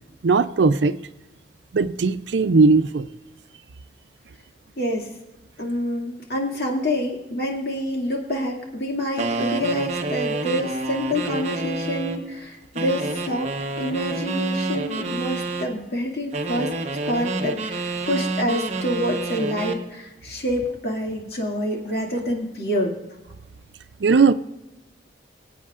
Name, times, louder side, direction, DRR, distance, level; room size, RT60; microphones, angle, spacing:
voice 1, 0.2-1.0 1.7-3.1 24.0-24.3, right 4 dB, 85° right, 0.5 m, -18 dB
voice 2, 4.8-5.1 5.6-13.5 13.8-16.7 17.1-22.9, equal, 60° left, 2.3 m, -27 dB
sound 1, 9.2-12.2 12.7-15.7 16.3-19.8, right 2 dB, 40° right, 1.0 m, -28 dB
23.5 x 8.5 x 2.5 m
head